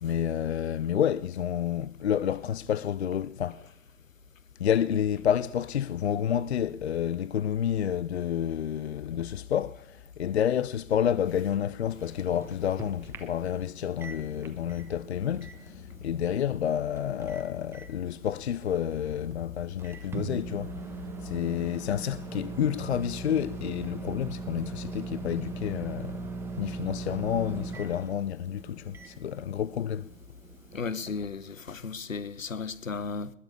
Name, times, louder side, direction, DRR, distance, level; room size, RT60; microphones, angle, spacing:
voice 1, 0.0-3.6 4.6-20.7 21.2-26.3 26.6-30.1, left 9 dB, 55° left, 0.5 m, -29 dB
Microwave oven, 11.9-31.2, right 4 dB, 5° right, 1.0 m, -41 dB
voice 2, 30.7-33.3, left 4 dB, 75° left, 1.2 m, -35 dB
20.5 x 7.0 x 9.5 m
figure-of-eight pair, 120°, 40 cm